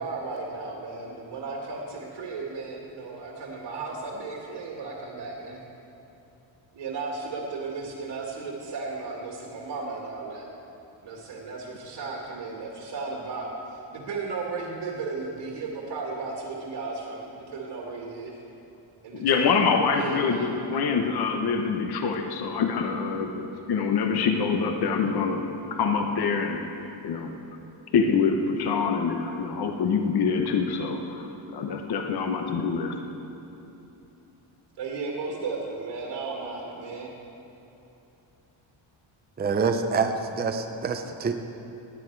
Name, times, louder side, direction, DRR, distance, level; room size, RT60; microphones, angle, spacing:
voice 1, 0.0-5.6 6.7-10.5 11.0-18.3 19.0-19.5 19.9-20.5 34.8-37.1, right 4 dB, 65° right, -2 dB, 2.0 m, -35 dB
voice 2, 19.1-25.4 25.7-26.6 27.0-27.3 27.9-31.3 31.5-33.0, left 5 dB, 50° left, 4 dB, 1.0 m, -25 dB
voice 3, 39.4-41.3, right 5 dB, 20° right, 6 dB, 0.6 m, -26 dB
17.5 x 10.0 x 4.7 m, 3.0 s
cardioid pair, 155°, 49 cm